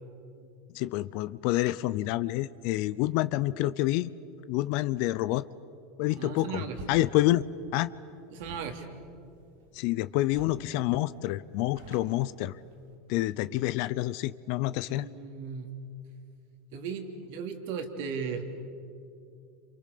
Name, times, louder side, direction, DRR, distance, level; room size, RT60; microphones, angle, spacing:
voice 1, 0.7-4.1 4.5-5.5 6.0-7.4 7.7-7.9 9.7-12.5 13.1-15.1, left 16 dB, 60° left, 16 dB, 0.7 m, -28 dB
voice 2, 6.1-6.8 8.3-8.9 14.9-15.7 16.7-18.4, right 6 dB, 70° right, 5 dB, 3.1 m, -36 dB
sound 1, 6.7-7.0 8.4-9.9 10.3-10.7 11.0-11.1 11.4-13.0, right 2 dB, 85° right, 7.0 m, -47 dB
29.0 x 27.5 x 6.8 m, 2.5 s
hypercardioid pair, 105°, 0 cm